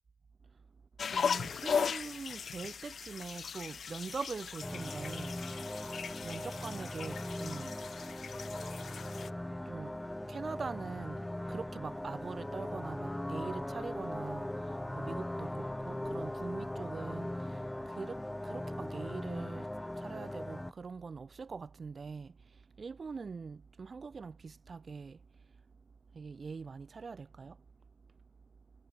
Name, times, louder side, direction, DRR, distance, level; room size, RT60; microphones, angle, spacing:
sound 1, 1.0-9.3, left 6 dB, 35° left, 1.9 m, -38 dB
voice 1, 1.0-8.1 9.5-27.7 28.1-28.2, right 5 dB, 30° right, 4.3 m, -44 dB
sound 2, 4.6-20.7, left 1 dB, 5° left, 2.6 m, -39 dB
hypercardioid pair, 65°, 0 cm